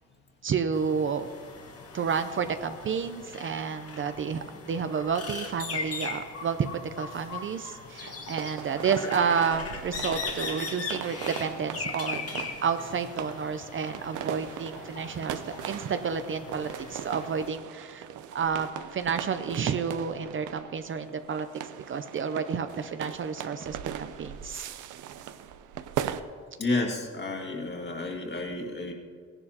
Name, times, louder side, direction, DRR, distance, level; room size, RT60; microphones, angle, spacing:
voice 1, 0.4-1.3 1.9-15.4 15.7-21.5 21.9-24.7, right 6 dB, 40° right, 9 dB, 0.6 m, -30 dB
sound 1, 0.7-17.5, left 4 dB, 50° left, 1.6 m, -40 dB
sound 2, 8.0-26.2, right 10 dB, 85° right, 0.6 m, -39 dB
voice 2, 26.6-28.9, left 2 dB, 35° left, 1 dB, 2.1 m, -31 dB
16.0 x 11.0 x 2.9 m, 2.1 s
cardioid pair, 90°, 30 cm